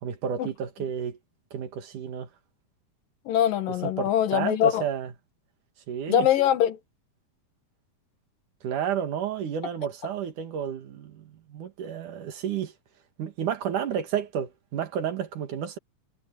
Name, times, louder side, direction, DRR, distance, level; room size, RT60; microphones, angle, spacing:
voice 1, 0.0-1.2 1.5-2.3 3.8-5.1 5.9-6.3 8.6-12.7 13.2-15.8, right 8 dB, 65° right, 3.2 m, -31 dB
voice 2, 3.3-4.8 6.1-6.8, left 10 dB, 80° left, 3.2 m, -23 dB
omnidirectional pair, 3.9 m